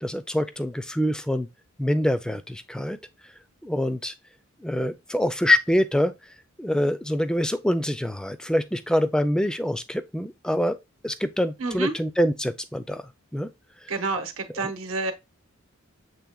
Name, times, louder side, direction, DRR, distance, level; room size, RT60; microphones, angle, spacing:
voice 1, 0.0-1.5 1.8-3.0 3.6-4.1 4.6-6.2 6.6-10.8 11.0-13.5 14.6-14.7, left 1 dB, 5° left, 0.3 m, -25 dB
voice 2, 11.6-11.9 13.9-15.1, right 3 dB, 75° right, 1.0 m, -29 dB
7.3 x 3.2 x 2.2 m
head